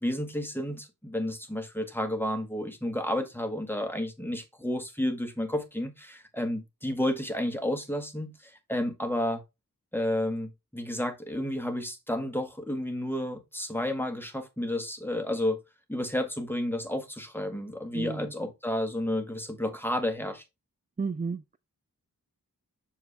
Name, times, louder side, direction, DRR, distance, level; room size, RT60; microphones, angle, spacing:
voice 1, 0.0-9.4 9.9-15.6 15.9-20.4, left 1 dB, 5° left, 1.4 m, -31 dB
voice 2, 17.9-18.5 21.0-21.6, right 4 dB, 25° right, 0.4 m, -33 dB
6.6 x 4.6 x 3.4 m
wide cardioid pair, 50°, 35 cm